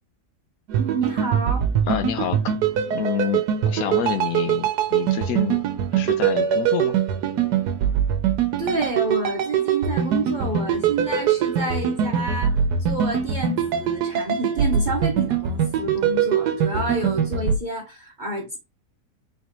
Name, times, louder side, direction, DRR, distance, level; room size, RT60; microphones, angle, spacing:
sound 1, 0.7-17.6, right 8 dB, 85° right, 1.3 m, -23 dB
voice 1, 0.8-1.7 8.6-18.6, right 3 dB, 40° right, 0.7 m, -29 dB
voice 2, 1.9-2.6 2.9-5.6 5.9-6.9, left 9 dB, 70° left, 1.0 m, -28 dB
3.9 x 3.5 x 2.9 m
omnidirectional pair, 1.7 m